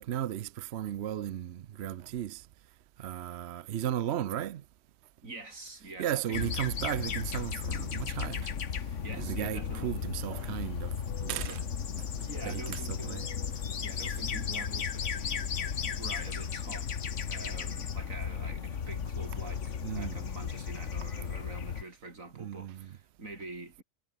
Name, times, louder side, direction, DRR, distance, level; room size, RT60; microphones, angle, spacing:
voice 1, 0.0-2.5 3.0-4.6 6.0-8.5 9.2-10.9 11.2-11.7 12.5-13.2 19.8-20.2 22.4-22.9, right 11 dB, 60° right, 0.9 m, -35 dB
voice 2, 5.2-6.5 9.0-10.0 12.2-13.3 13.8-15.5 15.7-16.9 17.3-23.8, right 2 dB, 85° right, 4.9 m, -45 dB
sound 1, 6.3-21.8, left 7 dB, 65° left, 1.6 m, -35 dB
omnidirectional pair, 1.4 m